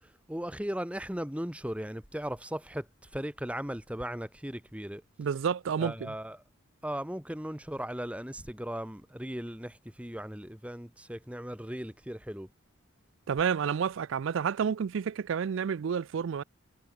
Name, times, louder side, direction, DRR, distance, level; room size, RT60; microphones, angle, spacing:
voice 1, 0.0-5.0 5.8-6.4 6.8-12.5, equal, 5° right, 1.6 m, -37 dB
voice 2, 5.2-6.1 13.3-16.4, right 7 dB, 60° right, 0.4 m, -30 dB
head